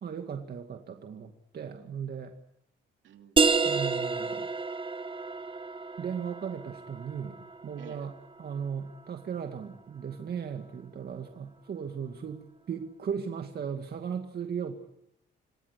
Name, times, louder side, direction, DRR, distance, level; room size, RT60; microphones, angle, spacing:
voice 1, 0.0-2.3 3.6-4.5 6.0-7.4 7.6-14.8, right 7 dB, 50° right, 5 dB, 2.2 m, -37 dB
voice 2, 3.0-4.4 7.8-8.0, right 9 dB, 75° right, 4 dB, 3.2 m, -53 dB
sound 1, 3.4-8.7, right 4 dB, 25° right, 1.6 m, -30 dB
28.0 x 19.0 x 8.3 m, 0.77 s
cardioid pair, 90°, 20 cm